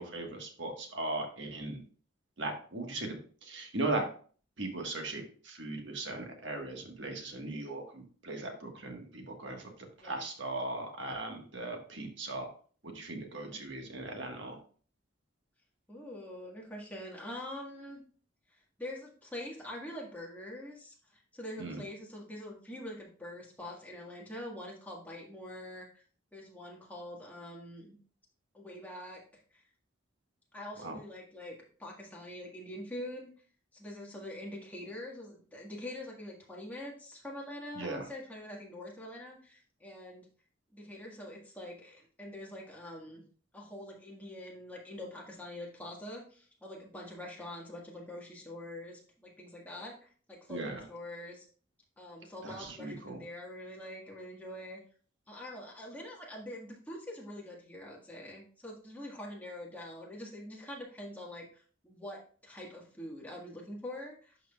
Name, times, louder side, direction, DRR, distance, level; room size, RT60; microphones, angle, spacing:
voice 1, 0.0-1.8 2.4-3.1 3.4-4.1 4.6-12.5 12.8-14.6 21.6-21.8 30.8-31.0 37.7-38.1 50.5-50.9 52.4-53.2, right 2 dB, 65° right, 3 dB, 1.5 m, -38 dB
voice 2, 15.9-18.0 18.5-26.0 26.3-28.0 28.5-29.2 29.5-29.6 30.5-33.3 33.7-40.3 40.7-43.2 43.5-51.4 52.0-54.8 55.3-64.4, left 1 dB, 10° left, -2 dB, 1.6 m, -45 dB
11.5 x 4.6 x 2.4 m, 0.44 s
head